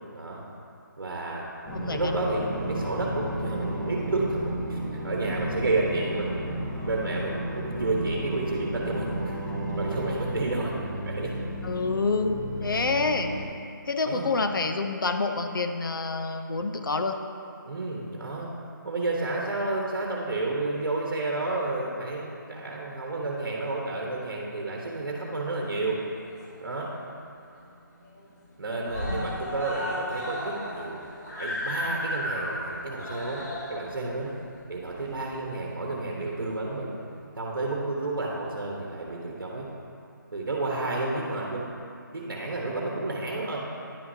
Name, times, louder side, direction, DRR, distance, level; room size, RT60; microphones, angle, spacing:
voice 1, 1.0-1.4 1.9-4.8 5.0-6.3 6.8-10.7 11.1-11.3 12.7-12.8 14.0-14.3 17.7-18.5 18.8-26.0 26.6-26.9 28.6-31.0 31.4-33.4 33.7-34.4 34.7-36.9 37.4-39.7 40.3-41.6 42.1-43.6, right 2 dB, 70° right, -2 dB, 1.2 m, -31 dB
sound 1, 1.6-13.4, right 1 dB, 5° left, 0.7 m, -33 dB
voice 2, 1.7-2.1 11.6-12.4 12.6-13.3 13.9-17.2 29.1-29.4, left 3 dB, 75° left, 6 dB, 0.6 m, -27 dB
Screaming, 25.9-26.9 27.2-27.3 27.6-27.7 28.0-28.5 28.8-35.6 36.5-36.6, left 1 dB, 50° left, 1.8 m, -34 dB
10.5 x 5.8 x 2.8 m, 2.5 s
figure-of-eight pair, 170°, 11 cm